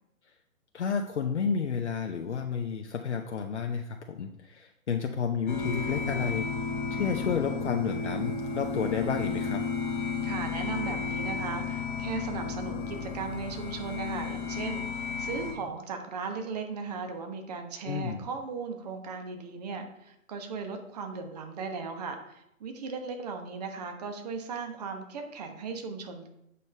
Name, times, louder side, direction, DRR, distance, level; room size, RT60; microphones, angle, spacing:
voice 1, 0.7-6.5 6.9-9.6 17.8-18.3, left 6 dB, 55° left, 3 dB, 0.8 m, -31 dB
sound 1, 5.5-15.5, left 5 dB, 35° left, 1.1 m, -33 dB
voice 2, 10.2-26.3, right 5 dB, 30° right, 5 dB, 1.1 m, -37 dB
8.4 x 5.3 x 4.3 m, 0.79 s
figure-of-eight pair, 135°, 42 cm